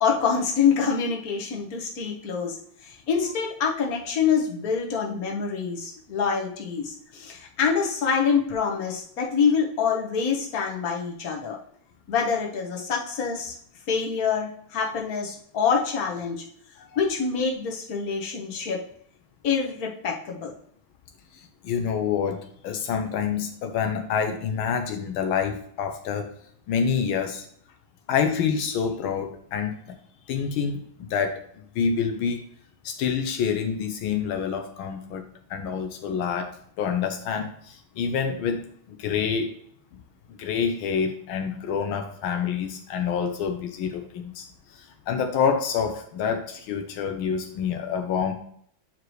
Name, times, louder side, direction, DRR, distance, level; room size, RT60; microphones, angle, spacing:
voice 1, 0.0-2.6 2.8-11.6 12.1-13.5 13.9-16.4 17.0-18.8 19.4-20.5, left 6 dB, 50° left, -1 dB, 1.7 m, -26 dB
voice 2, 21.6-26.3 26.7-27.5 28.1-29.9 30.3-30.8 31.1-31.4 31.7-32.5 32.8-35.2 35.5-36.5 36.8-39.5 40.3-48.3, left 6 dB, 80° left, 5 dB, 1.6 m, -27 dB
9.1 x 4.7 x 3.2 m, 0.64 s
omnidirectional pair, 2.2 m